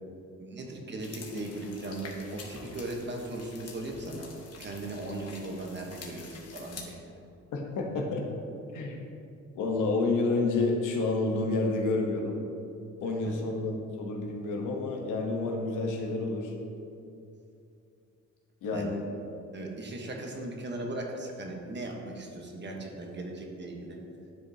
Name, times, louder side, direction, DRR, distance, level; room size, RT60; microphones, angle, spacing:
voice 1, 0.4-4.3 4.6-7.0 13.3-13.4 18.7-18.9 19.5-24.0, right 2 dB, 35° right, 1 dB, 1.1 m, -38 dB
sound 1, 1.0-6.8, left 4 dB, 55° left, 1.2 m, -47 dB
voice 2, 7.5-8.3 8.7-9.0 9.5-12.4 13.0-16.5 18.6-19.0, left 3 dB, 85° left, 1 dB, 1.0 m, -29 dB
10.5 x 4.9 x 2.8 m, 2.6 s
cardioid pair, 90°, 30 cm